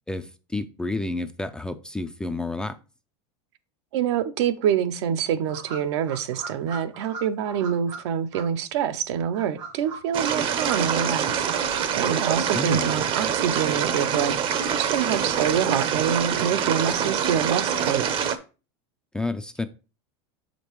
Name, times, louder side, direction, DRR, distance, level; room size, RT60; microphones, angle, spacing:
voice 1, 0.1-2.8 12.5-13.0 19.1-19.7, left 2 dB, 5° left, 0.4 m, -30 dB
voice 2, 3.9-14.4 14.7-18.0, right 9 dB, 70° right, 0.7 m, -26 dB
sound 1, 5.5-8.0 8.3-8.4 9.1-11.1 11.3-13.0 13.3-14.2, right 4 dB, 90° right, 2.9 m, -39 dB
sound 2, 10.1-18.4, right 8 dB, 35° right, 0.7 m, -25 dB
6.5 x 5.1 x 3.1 m
supercardioid pair, 135°, 15 cm